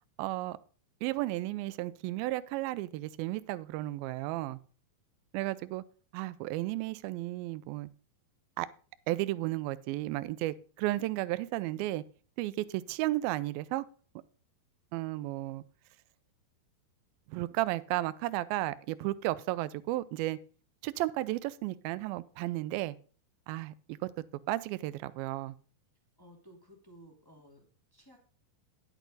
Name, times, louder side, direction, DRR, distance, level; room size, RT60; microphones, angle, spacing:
voice 1, 0.2-0.6 1.0-4.6 5.3-5.8 6.1-7.9 8.6-8.7 9.1-12.0 12.4-13.9 14.9-15.6 17.3-20.4 20.8-23.0 23.5-24.0 24.5-25.5, right 17 dB, 80° right, 16 dB, 2.3 m, -33 dB
voice 2, 26.2-28.2, equal, 15° left, 0 dB, 0.7 m, -56 dB
10.0 x 8.3 x 3.9 m, 0.40 s
omnidirectional pair, 4.5 m